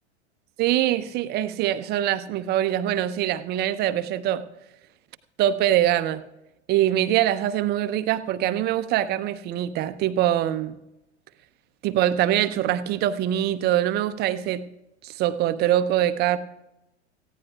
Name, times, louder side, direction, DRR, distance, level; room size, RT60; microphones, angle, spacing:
voice 1, 0.6-4.4 5.4-6.2 6.7-10.8 11.8-14.6 15.0-16.4, right 12 dB, 30° right, 13 dB, 0.6 m, -23 dB
18.0 x 15.0 x 2.3 m, 0.93 s
figure-of-eight pair, 90°, 34 cm